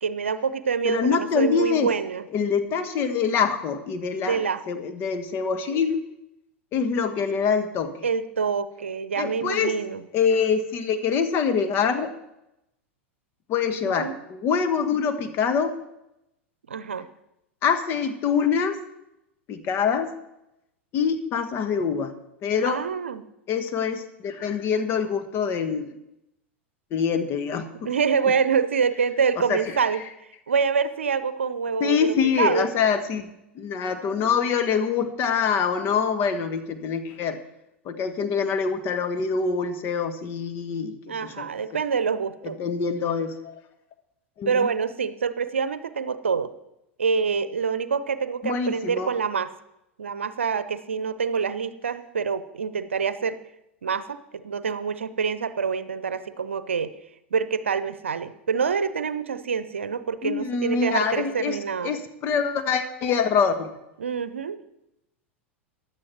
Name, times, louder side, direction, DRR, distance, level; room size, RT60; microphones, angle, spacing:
voice 1, 0.0-2.2 4.2-4.6 8.0-10.0 13.9-14.1 16.7-17.1 22.6-23.2 27.8-30.0 30.5-32.0 32.4-32.7 41.1-42.6 44.5-46.5 47.0-49.5 50.0-53.4 53.8-56.9 57.3-61.9 64.0-64.6, right 6 dB, 70° right, 14 dB, 0.8 m, -26 dB
voice 2, 0.8-1.9 2.3-6.0 6.7-7.9 9.2-9.7 10.1-12.1 13.5-15.7 17.6-18.8 19.5-20.1 20.9-22.1 22.4-22.9 23.5-25.9 26.9-27.9 28.2-28.3 29.4-29.8 31.8-37.4 37.8-41.5 42.4-43.6 44.4-44.7 48.4-49.1 60.2-63.7, left 6 dB, 35° left, 7 dB, 1.4 m, -25 dB
15.5 x 11.0 x 4.5 m, 0.86 s
figure-of-eight pair, 85°, 7 cm